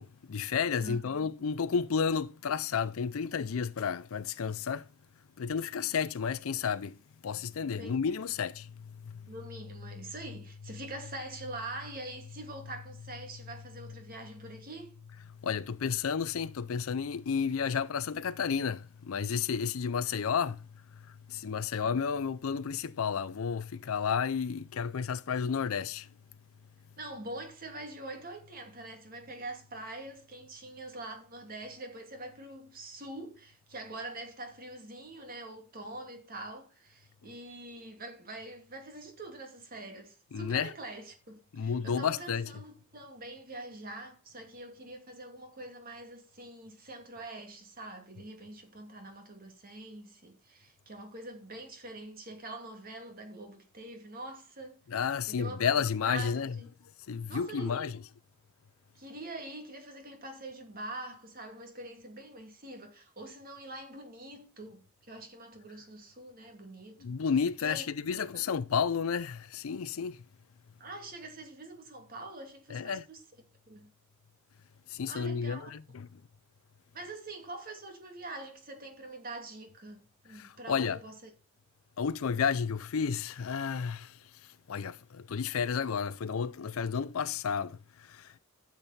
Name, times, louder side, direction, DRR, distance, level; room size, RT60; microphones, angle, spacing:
voice 1, 0.0-4.9 5.4-7.0 7.2-9.3 15.4-20.7 20.9-26.1 40.3-40.7 41.5-42.5 54.9-56.6 57.1-57.9 67.0-70.2 72.7-73.1 74.9-76.1 80.3-81.0 82.0-88.4, left 6 dB, 75° left, 0.5 m, -32 dB
voice 2, 0.8-1.3 7.8-8.0 9.3-15.0 21.8-21.9 27.0-54.8 55.3-55.7 56.0-56.7 57.3-57.9 58.9-67.0 67.6-68.4 70.8-73.2 73.7-73.9 75.1-75.7 76.9-81.3, right 2 dB, 45° right, 2.6 m, -44 dB
12.0 x 7.5 x 4.2 m
head